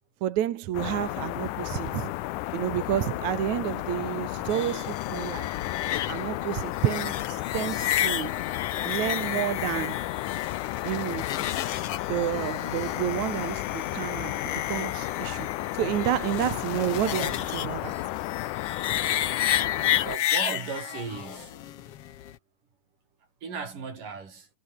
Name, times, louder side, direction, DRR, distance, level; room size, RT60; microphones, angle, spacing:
voice 1, 0.2-2.1 2.5-5.5 6.1-8.4 8.8-10.0 10.8-11.3 12.1-17.9, right 12 dB, 70° right, 2.5 m, -30 dB
sound 1, 0.7-20.2, left 17 dB, 80° left, 2.2 m, -33 dB
sound 2, 4.5-22.4, left 11 dB, 60° left, 1.8 m, -32 dB
voice 2, 20.0-21.5 23.4-24.5, right 5 dB, 90° right, 6.8 m, -36 dB
omnidirectional pair, 3.7 m